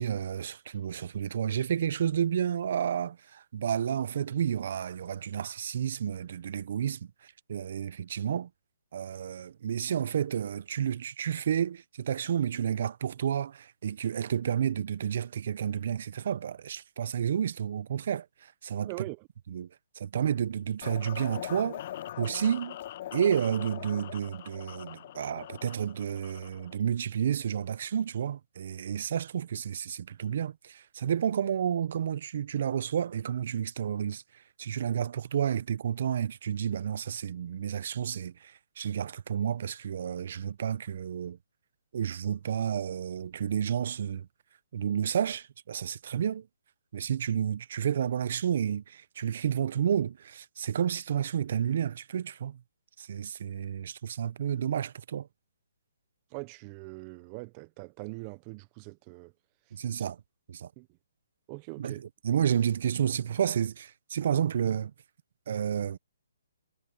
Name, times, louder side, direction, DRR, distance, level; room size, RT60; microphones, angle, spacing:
voice 1, 0.0-7.0 7.5-8.5 8.9-18.9 19.5-19.7 19.9-21.8 22.2-22.8 23.1-34.2 34.6-41.4 41.9-44.3 44.7-46.5 46.9-52.6 53.0-55.3 59.7-60.2 60.5-60.7 61.8-64.9 65.5-66.0, right 8 dB, 55° right, 1.0 m, -31 dB
voice 2, 18.8-19.3 56.3-59.3 59.9-60.1 60.8-60.9 61.5-62.0, right 28 dB, 30° right, 1.0 m, -42 dB
sound 1, 20.8-26.8, left 12 dB, 45° left, 0.4 m, -42 dB
hypercardioid pair, 145°, 0 cm